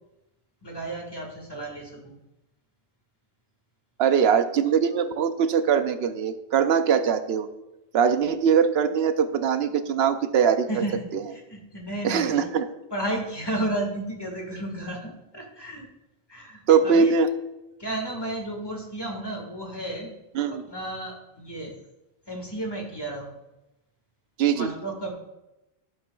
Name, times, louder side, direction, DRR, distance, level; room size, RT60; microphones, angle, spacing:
voice 1, 0.6-2.1 10.7-12.5 12.9-15.9 16.3-17.1 17.8-20.1 20.5-21.7 22.3-23.4 24.5-25.1, right 1 dB, 25° left, 0 dB, 1.8 m, -33 dB
voice 2, 4.0-7.5 7.9-10.8 12.0-12.7 16.7-17.3 20.3-20.6 24.4-24.7, right 7 dB, 75° right, 10 dB, 0.9 m, -22 dB
12.0 x 7.5 x 2.3 m, 0.95 s
omnidirectional pair, 1.1 m